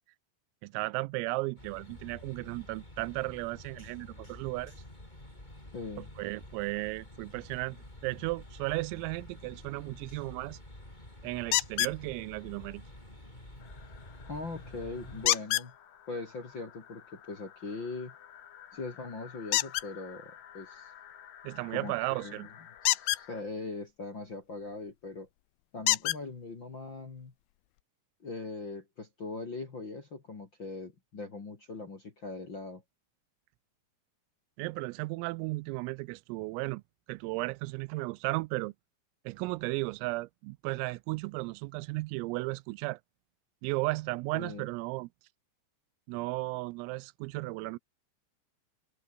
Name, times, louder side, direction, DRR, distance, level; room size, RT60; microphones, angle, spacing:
voice 1, 0.6-4.8 6.0-7.8 8.0-10.6 11.2-12.8 21.4-22.5 34.6-36.8 37.1-38.7 39.3-43.0 43.6-45.1 46.1-47.8, right 23 dB, 85° right, 3.3 m, -35 dB
sound 1, 1.6-15.3, left 1 dB, 10° left, 5.5 m, -49 dB
voice 2, 5.7-6.1 14.2-15.7 16.1-18.1 18.7-20.9 21.7-22.5 22.8-25.3 25.7-27.3 28.2-32.8 44.3-44.7, left 3 dB, 35° left, 2.0 m, -41 dB
sound 2, 11.5-12.0 15.3-15.7 19.5-19.9 22.8-23.2 24.9-25.0 25.9-26.2 27.2-27.3 27.8-27.9, left 22 dB, 90° left, 2.5 m, -27 dB
sound 3, 13.6-23.4, left 9 dB, 55° left, 2.8 m, -53 dB
omnidirectional pair, 6.0 m